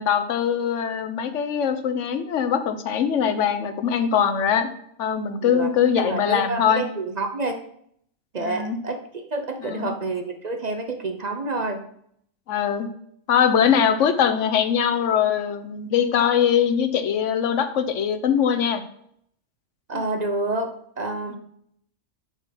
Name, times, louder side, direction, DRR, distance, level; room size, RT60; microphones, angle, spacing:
voice 1, 0.0-4.7 5.0-6.8 8.4-8.8 9.7-9.9 12.5-12.9 13.3-18.8 19.9-20.0, left 8 dB, 85° left, 9 dB, 1.1 m, -22 dB
voice 2, 5.4-7.6 8.3-11.8 19.9-21.4, right 2 dB, 40° right, 5 dB, 0.7 m, -28 dB
6.9 x 4.6 x 5.7 m, 0.68 s
omnidirectional pair, 1.2 m